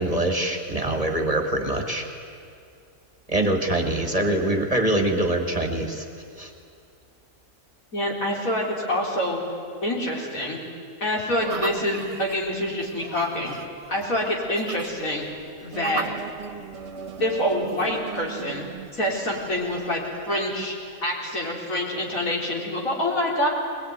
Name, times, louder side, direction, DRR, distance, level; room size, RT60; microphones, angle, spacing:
voice 1, 0.0-2.1 3.3-6.0 6.4-6.5, right 1 dB, 25° right, 3 dB, 1.9 m, -24 dB
voice 2, 7.9-9.4 9.8-10.6 11.0-13.6 13.9-15.3 15.6-16.0 17.2-18.7 18.9-20.0 20.3-20.8 21.0-23.5, left 1 dB, 75° left, -2 dB, 4.6 m, -26 dB
sound 1, 11.4-21.0, right 5 dB, 55° right, 1.4 m, -38 dB
22.0 x 21.0 x 9.6 m, 2.4 s
omnidirectional pair, 1.5 m